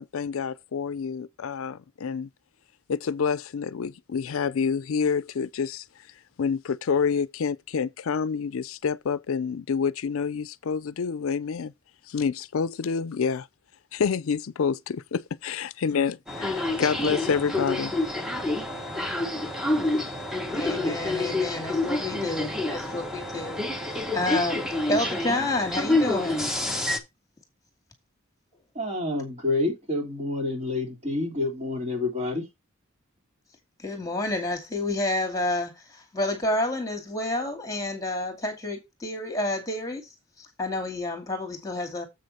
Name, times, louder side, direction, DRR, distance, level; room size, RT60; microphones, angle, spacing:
voice 1, 0.0-2.3 2.9-5.8 6.4-11.7 12.1-13.5 13.9-17.9, left 6 dB, 80° left, 0.4 m, -28 dB
sound 1, 16.3-27.0, left 2 dB, 5° right, 1.2 m, -28 dB
voice 2, 20.5-26.5 33.8-42.0, left 2 dB, 15° left, 2.4 m, -30 dB
voice 3, 28.8-32.4, left 2 dB, 35° right, 3.5 m, -28 dB
7.8 x 6.4 x 4.2 m
head